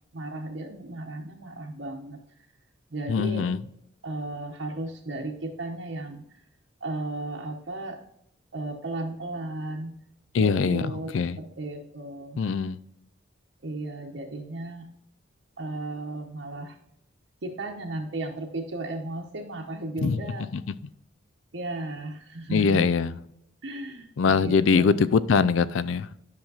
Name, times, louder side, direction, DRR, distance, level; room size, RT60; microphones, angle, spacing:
voice 1, 0.1-2.2 2.9-3.4 4.0-6.2 6.8-8.0 8.5-9.9 10.4-11.1 11.4-12.4 13.6-14.9 15.6-16.8 17.4-20.5 21.5-22.8 23.6-25.0, right 2 dB, 75° right, 0.9 m, -35 dB
voice 2, 3.1-3.6 10.3-11.4 12.4-12.8 20.0-20.2 20.5-20.8 22.5-23.2 24.2-26.1, left 5 dB, 85° left, 0.4 m, -23 dB
10.5 x 5.7 x 2.4 m
head